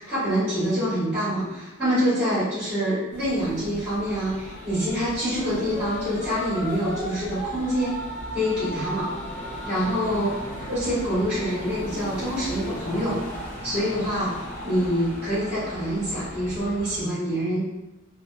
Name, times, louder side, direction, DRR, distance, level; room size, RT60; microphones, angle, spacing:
voice 1, 0.0-8.0 8.3-9.1 9.6-13.2 13.6-17.6, equal, 10° right, -13 dB, 1.2 m, -26 dB
sound 1, 3.1-17.0, equal, 40° left, 0.6 m, -36 dB
2.7 x 2.1 x 2.3 m, 0.98 s
head